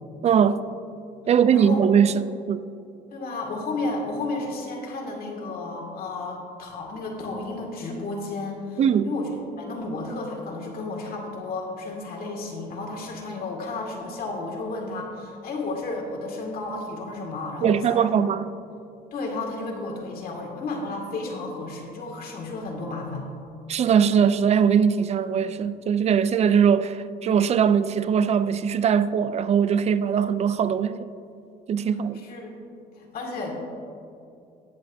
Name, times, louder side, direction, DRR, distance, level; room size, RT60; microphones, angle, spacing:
voice 1, 0.2-0.7 1.3-2.2 2.5-2.7 8.8-9.1 17.6-18.5 23.7-31.1 31.7-32.2, right 7 dB, 40° right, 0.4 m, -21 dB
voice 2, 3.1-9.3 9.6-18.1 19.1-23.3 32.2-32.6 33.0-33.5, left 2 dB, 60° left, 2.2 m, -32 dB
19.0 x 6.6 x 2.7 m
cardioid pair, 110°, 17 cm